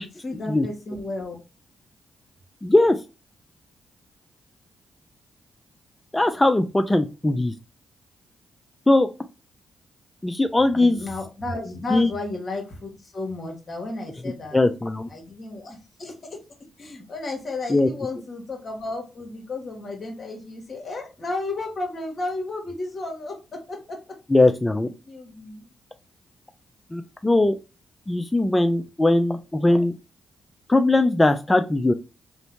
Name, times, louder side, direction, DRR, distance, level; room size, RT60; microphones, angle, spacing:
voice 1, 0.0-1.4 10.7-14.6 15.1-16.1 16.8-23.4 23.7-24.0 25.1-25.6, left 2 dB, 45° left, 2 dB, 1.0 m, -33 dB
voice 2, 2.6-3.0 6.1-7.5 8.9-9.1 10.2-11.0 11.9-12.1 14.5-15.1 17.7-17.9 24.3-24.9 26.9-27.6 28.1-29.9 30.7-31.9, left 2 dB, 20° left, 8 dB, 0.3 m, -20 dB
2.6 x 2.0 x 3.0 m, 0.29 s
supercardioid pair, 50°, 0 cm